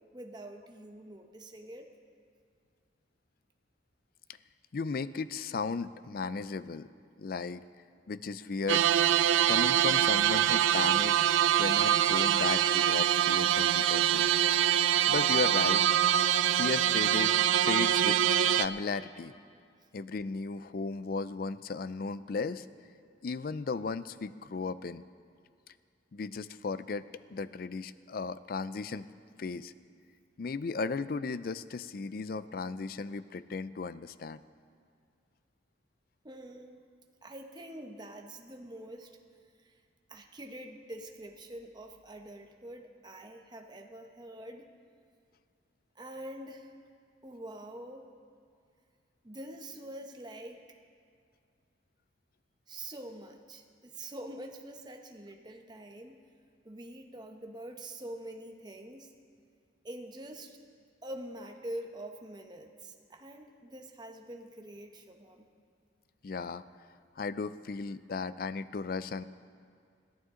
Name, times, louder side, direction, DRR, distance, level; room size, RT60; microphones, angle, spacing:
voice 1, 0.1-1.9 14.4-14.6 36.2-36.8 37.2-39.2 39.6-39.7 40.1-44.7 46.0-46.7 47.2-48.0 49.2-50.6 52.7-56.2 56.6-59.1 59.8-60.6 61.0-65.4, right 1 dB, 20° right, 4 dB, 0.9 m, -45 dB
voice 2, 4.7-6.9 7.2-7.6 8.1-8.9 9.5-14.6 15.1-15.9 16.5-17.4 17.6-19.3 19.9-22.7 23.2-25.0 26.1-27.1 27.3-29.1 29.4-29.7 30.4-34.4 66.2-66.6 67.2-69.2, left 4 dB, 50° left, 15 dB, 0.4 m, -35 dB
sound 1, 8.7-18.7, right 10 dB, 90° right, 0.4 m, -25 dB
21.5 x 14.5 x 3.8 m, 2.2 s
head